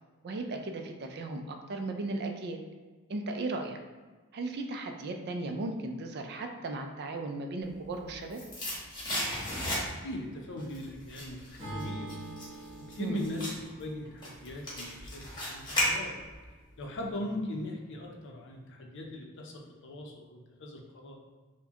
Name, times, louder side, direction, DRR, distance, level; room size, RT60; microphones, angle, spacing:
voice 1, 0.2-2.6 3.1-3.8 4.3-8.4 13.0-13.3, right 2 dB, 50° right, 4 dB, 0.4 m, -36 dB
sound 1, 7.8-10.2 10.6-16.4 16.8-16.9, left 1 dB, 20° left, 1.1 m, -35 dB
voice 2, 9.9-12.1 12.8-16.1 16.8-21.2, left 1 dB, 60° left, 1 dB, 0.6 m, -39 dB
Acoustic guitar / Strum, 11.6-15.8, right 1 dB, 30° right, 1.2 m, -44 dB
4.6 x 2.2 x 2.8 m, 1.4 s
head